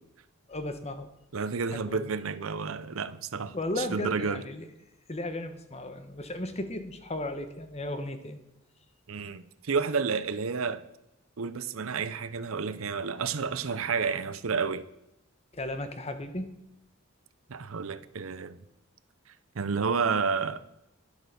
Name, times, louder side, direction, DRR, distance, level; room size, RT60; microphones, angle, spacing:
voice 1, 0.5-1.1 1.7-2.1 3.5-4.7 5.1-8.4 15.5-16.5, left 1 dB, 30° left, 1.1 m, -35 dB
voice 2, 1.3-4.4 9.1-10.8 11.4-14.9 17.5-18.6 19.5-20.6, right 5 dB, 80° right, 0.7 m, -30 dB
11.5 x 7.8 x 6.8 m
head